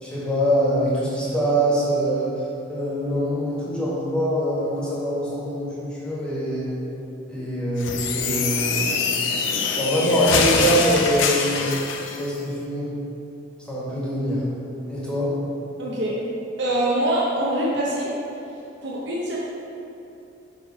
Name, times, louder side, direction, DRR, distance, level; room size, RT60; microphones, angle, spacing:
voice 1, 0.0-6.8 7.3-9.2 9.7-11.8 12.1-13.0 13.7-14.5 14.9-15.3, equal, 5° left, -9 dB, 1.4 m, -24 dB
sound 1, 7.8-12.2, left 5 dB, 75° left, 0.5 m, -24 dB
voice 2, 15.8-16.2 16.6-18.1 18.8-19.4, right 1 dB, 65° right, -5 dB, 0.8 m, -24 dB
7.0 x 3.2 x 4.6 m, 2.8 s
head